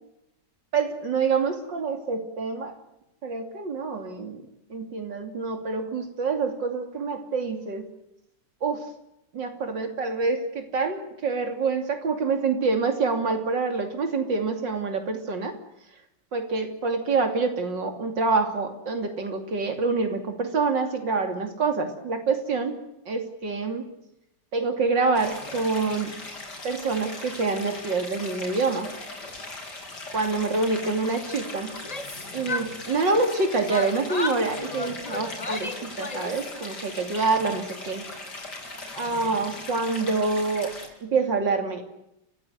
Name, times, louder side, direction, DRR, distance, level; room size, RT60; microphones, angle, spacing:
voice 1, 0.7-2.7 3.2-4.4 4.7-7.8 8.6-8.8 9.3-15.5 16.3-22.7 23.1-23.8 24.5-26.1 26.6-28.9 30.1-31.7 32.3-38.0 39.0-40.7 41.0-41.8, right 4 dB, 90° right, 6 dB, 3.6 m, -26 dB
Stream, 25.2-40.9, left 2 dB, 65° left, 4.7 m, -39 dB
Yell, 31.7-33.4 33.7-36.5, left 3 dB, 20° left, 1.8 m, -34 dB
30.0 x 15.0 x 9.3 m, 0.85 s
omnidirectional pair, 1.9 m